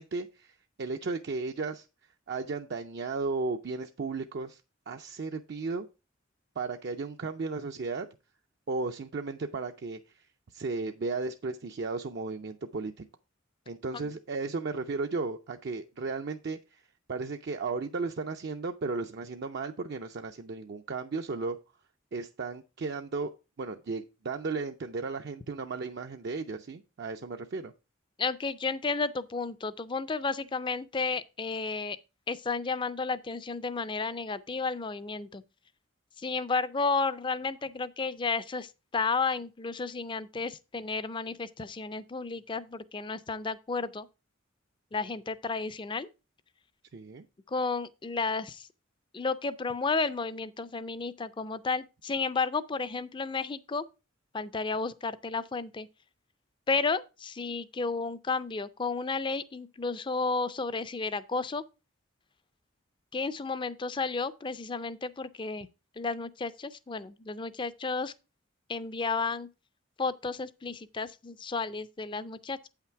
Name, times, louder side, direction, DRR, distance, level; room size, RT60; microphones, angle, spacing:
voice 1, 0.0-1.9 2.3-4.6 4.9-5.9 6.6-8.1 8.7-10.3 10.5-13.0 13.7-16.8 17.1-21.6 22.1-23.3 23.6-27.7 46.9-47.3, right 4 dB, 55° right, 0.5 m, -35 dB
voice 2, 28.2-32.0 32.3-35.4 36.2-44.1 44.9-46.1 47.5-48.7 49.1-53.9 54.3-55.9 56.7-61.6 63.1-65.7 66.0-68.1 68.7-69.5 70.0-72.7, left 4 dB, 25° left, 0.4 m, -32 dB
8.4 x 5.8 x 4.5 m
head